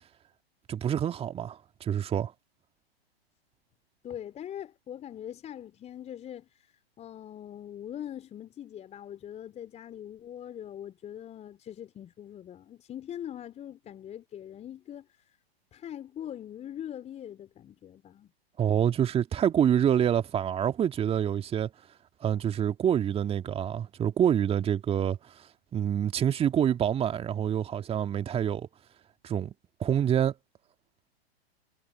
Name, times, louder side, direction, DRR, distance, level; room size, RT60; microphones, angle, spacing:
voice 1, 0.7-2.3 18.6-21.7 22.2-25.2 25.7-28.7 29.2-29.5 29.8-30.3, right 9 dB, 20° right, 2.1 m, -26 dB
voice 2, 4.0-15.1 15.7-18.3, left 10 dB, 20° left, 3.8 m, -42 dB
figure-of-eight pair, 110°, 32 cm